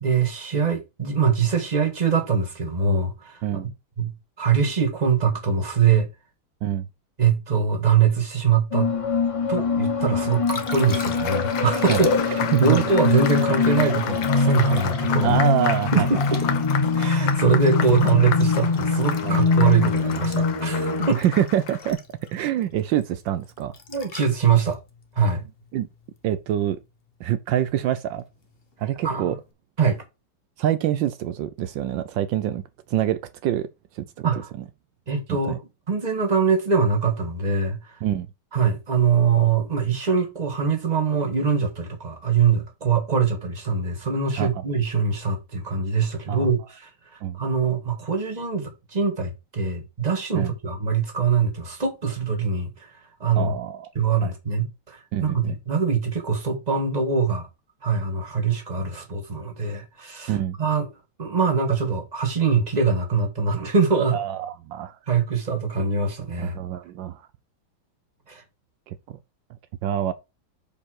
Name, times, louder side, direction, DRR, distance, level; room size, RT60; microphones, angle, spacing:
voice 1, 0.0-3.4 4.0-4.1 4.4-6.1 7.2-8.9 9.5-12.0 12.3-15.4 15.9-16.4 17.0-21.2 23.9-24.8 25.2-25.4 29.0-29.4 29.8-30.0 34.2-34.5 35.1-35.6 35.9-38.0 38.5-52.9 53.2-53.6 54.0-57.5 57.8-60.9 61.2-64.2 65.1-66.6 68.3-68.4, right 5 dB, 20° right, 1.8 m, -23 dB
sound 1, 8.7-21.1, left 4 dB, 55° left, 0.3 m, -23 dB
Liquid, 10.1-26.2 29.0-29.1, left 3 dB, 35° left, 1.2 m, -35 dB
Applause, 10.2-21.9, left 9 dB, 80° left, 1.7 m, -33 dB
voice 2, 15.2-16.1 19.2-19.9 21.1-22.0 22.3-23.7 25.7-25.9 26.2-26.8 27.2-28.2 28.8-29.4 30.6-32.6 32.9-33.7 33.9-34.3 34.6-34.7 35.3-35.6 38.0-38.3 44.4-44.6 46.3-46.5 47.2-47.4 50.3-50.5 53.4-53.9 54.2-54.3 55.1-55.5 60.3-60.6 64.1-65.0 66.4-67.2 68.9-69.2 69.8-70.1, right 11 dB, 80° right, 1.3 m, -25 dB
5.5 x 5.3 x 6.3 m
omnidirectional pair, 2.1 m